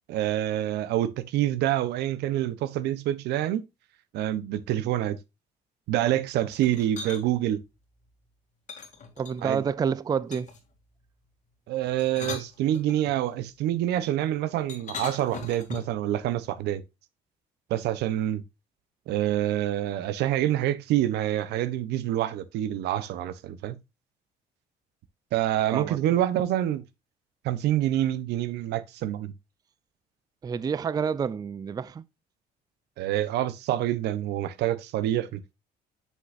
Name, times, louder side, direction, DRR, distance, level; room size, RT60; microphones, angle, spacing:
voice 1, 0.1-3.6 4.1-5.2 5.9-7.6 9.4-9.6 11.7-16.8 17.7-18.4 19.1-23.8 25.3-26.8 27.4-29.3 33.0-35.5, right 12 dB, 80° right, 0.8 m, -27 dB
sound 1, 6.5-7.2 8.7-9.6 10.3-10.7 11.8-13.2 14.7-16.0, left 5 dB, 45° left, 2.5 m, -39 dB
voice 2, 9.2-10.5 25.7-26.0 30.4-32.0, right 6 dB, 25° right, 0.4 m, -28 dB
7.6 x 6.7 x 2.5 m
cardioid pair, 110°, 17 cm